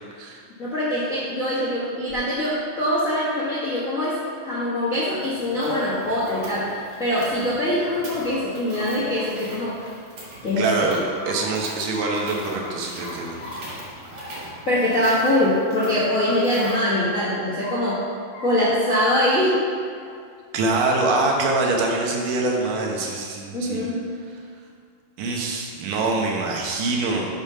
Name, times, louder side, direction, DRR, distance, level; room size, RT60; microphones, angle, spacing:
voice 1, 0.6-9.8 10.4-10.9 14.6-18.0 18.4-19.6 23.5-24.0, left 1 dB, 75° left, -8 dB, 0.7 m, -23 dB
sound 1, 2.1-2.2 2.8-3.4 4.5-4.6 4.9-5.0 5.5-5.6 6.1-6.5 7.7-8.3 8.7-8.8 9.1-10.4 10.8-11.5 11.9-12.2 12.5-12.7 12.9-13.7 14.1-14.5 14.9-15.0 15.3-15.4 15.8-15.9 16.1-16.3 16.6-17.3 17.6-18.0 18.3-18.5 18.8-19.2 19.6-20.1 20.9-21.4, left 2 dB, 35° left, 2.2 m, -39 dB
sound 2, 5.2-16.7, right 1 dB, 50° right, 2.1 m, -42 dB
voice 2, 10.6-11.0 11.3-13.7 20.5-23.8 25.2-27.3, right 3 dB, 75° right, 0 dB, 2.6 m, -24 dB
6.8 x 5.6 x 5.5 m, 2.2 s
omnidirectional pair, 3.9 m